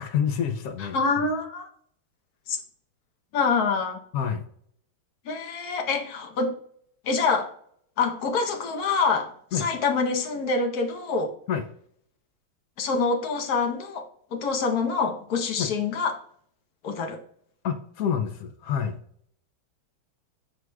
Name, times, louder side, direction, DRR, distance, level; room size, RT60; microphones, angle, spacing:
voice 1, 0.0-1.3 4.1-4.4 9.5-9.7 11.5-11.7 15.6-15.7 17.6-19.0, left 8 dB, 85° left, 6 dB, 0.7 m, -28 dB
voice 2, 0.9-1.7 2.5-2.6 3.3-4.0 5.2-6.5 7.0-7.5 8.0-11.3 12.8-16.1 16.8-17.2, left 4 dB, 55° left, 4 dB, 1.2 m, -26 dB
12.5 x 4.7 x 2.3 m, 0.64 s
omnidirectional pair, 2.2 m